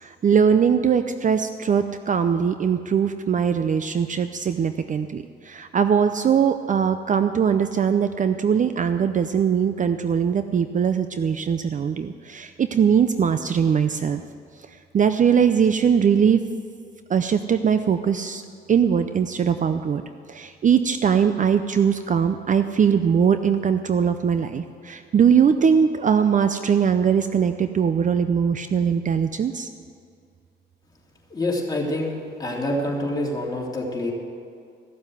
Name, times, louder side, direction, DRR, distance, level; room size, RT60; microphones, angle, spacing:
voice 1, 0.0-14.2 14.9-16.5 17.1-18.4 18.7-20.0 20.3-29.7, right 7 dB, 40° right, 10 dB, 0.5 m, -21 dB
voice 2, 31.3-34.1, left 1 dB, 20° left, -3 dB, 3.0 m, -26 dB
15.0 x 7.3 x 7.8 m, 2.4 s
cardioid pair, 90°, 20 cm